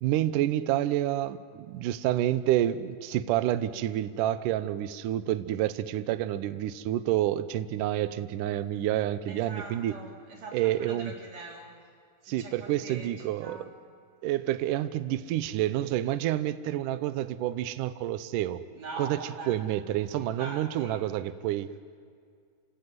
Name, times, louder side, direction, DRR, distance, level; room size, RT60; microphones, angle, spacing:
voice 1, 0.0-9.9 10.5-11.1 12.3-13.7 14.2-18.6 19.0-19.2 19.5-21.7, right 13 dB, 80° right, 12 dB, 1.9 m, -28 dB
voice 2, 9.3-11.7 12.2-13.1 13.4-13.7 18.8-19.6 20.1-21.0, right 3 dB, 40° right, -1 dB, 4.6 m, -42 dB
28.5 x 17.0 x 9.6 m, 2.2 s
omnidirectional pair, 4.7 m